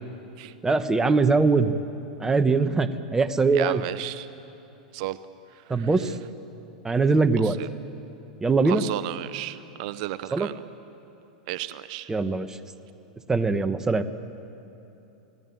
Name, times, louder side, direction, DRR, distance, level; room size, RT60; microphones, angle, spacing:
voice 1, 0.6-1.7 2.2-3.8 5.7-6.1 6.8-7.6 8.4-8.8 10.3-10.5 12.1-12.6 13.3-14.0, right 4 dB, 15° right, 11 dB, 1.2 m, -22 dB
voice 2, 3.5-4.3 4.9-5.2 5.7-5.9 7.4-7.7 8.6-10.5 11.5-12.1, right 15 dB, 60° right, 14 dB, 0.8 m, -33 dB
28.5 x 18.0 x 9.2 m, 2.9 s
hypercardioid pair, 105°, 4 cm